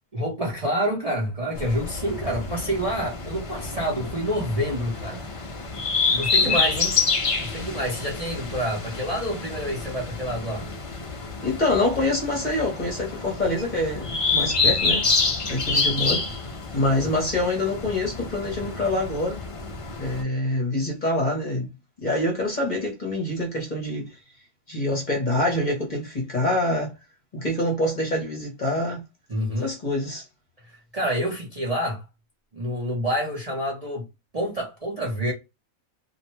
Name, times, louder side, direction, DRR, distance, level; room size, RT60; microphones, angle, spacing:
voice 1, 0.1-5.2 6.1-7.0 7.3-10.7 29.3-29.7 30.6-32.0 32.5-34.1 34.3-35.3, equal, 35° right, 0.6 m, -28 dB
sound 1, 1.5-20.2, left 4 dB, 55° left, 0.3 m, -28 dB
voice 2, 11.4-15.0 15.5-16.2 16.7-19.4 20.0-21.7 22.0-24.1 24.7-26.9 27.3-29.0 29.6-30.3, left 1 dB, 40° left, 0.8 m, -25 dB
2.5 x 2.1 x 3.0 m
omnidirectional pair, 1.4 m